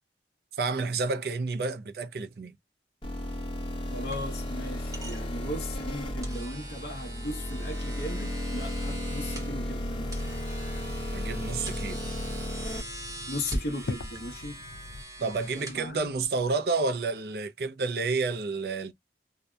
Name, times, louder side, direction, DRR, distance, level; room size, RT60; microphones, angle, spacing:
voice 1, 0.5-2.6 11.1-12.0 15.2-18.9, right 4 dB, 60° right, 0.4 m, -30 dB
sound 1, 3.0-12.8, left 1 dB, 30° left, 0.9 m, -34 dB
sound 2, 3.2-16.4, right 1 dB, 20° right, 0.8 m, -42 dB
voice 2, 3.9-10.2 11.9-12.0 13.3-14.6 15.2-16.1, left 1 dB, 65° left, 0.8 m, -37 dB
sound 3, 8.6-15.0, left 3 dB, 80° left, 0.4 m, -43 dB
2.7 x 2.1 x 2.2 m
head